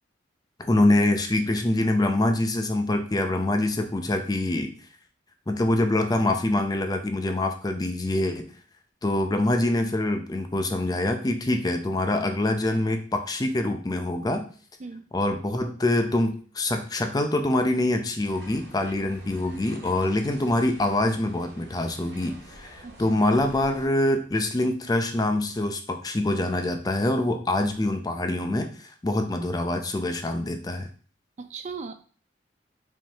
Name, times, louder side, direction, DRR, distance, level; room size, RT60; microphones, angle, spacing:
voice 1, 0.6-4.7 5.5-8.5 9.0-14.5 15.1-30.9, left 1 dB, 20° left, 6 dB, 0.5 m, -25 dB
sound 1, 18.3-23.9, right 1 dB, 70° right, 1.9 m, -48 dB
voice 2, 31.4-31.9, right 4 dB, 40° right, 9 dB, 0.4 m, -37 dB
5.2 x 3.6 x 2.7 m, 0.43 s
head